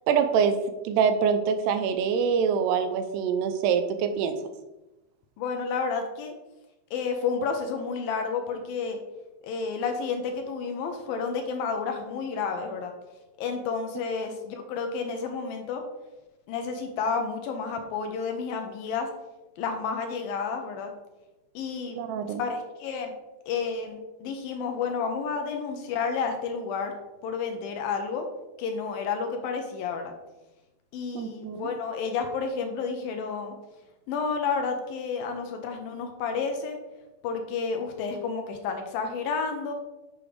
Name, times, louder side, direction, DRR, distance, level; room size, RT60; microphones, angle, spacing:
voice 1, 0.1-0.6 0.8-4.3 22.0-22.4 31.1-31.7, right 7 dB, 85° right, 8 dB, 2.7 m, -25 dB
voice 2, 5.4-6.3 6.9-9.0 9.4-12.9 13.4-15.8 16.5-19.1 19.6-20.9 21.5-22.0 22.3-23.1 23.5-26.9 27.2-28.3 28.6-30.1 30.9-33.5 34.1-36.8 37.2-39.7, left 5 dB, 75° left, 5 dB, 2.3 m, -30 dB
8.8 x 6.3 x 3.3 m, 1.0 s
omnidirectional pair, 4.8 m